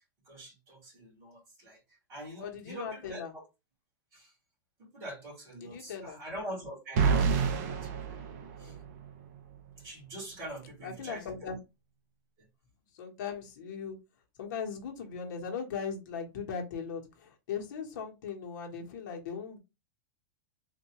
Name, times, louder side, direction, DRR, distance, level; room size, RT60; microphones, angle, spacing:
voice 1, 0.2-3.4 4.1-4.3 4.8-8.2 8.6-8.7 9.8-11.5 12.4-12.5, right 1 dB, 25° right, 2.2 m, -44 dB
voice 2, 2.4-3.3 5.6-6.2 8.6-8.9 10.8-11.6 12.9-14.0 14.4-19.6, left 6 dB, 55° left, 1.1 m, -39 dB
sound 1, 7.0-9.1, right 5 dB, 40° right, 0.6 m, -28 dB
3.6 x 2.6 x 3.0 m
supercardioid pair, 170°, 12 cm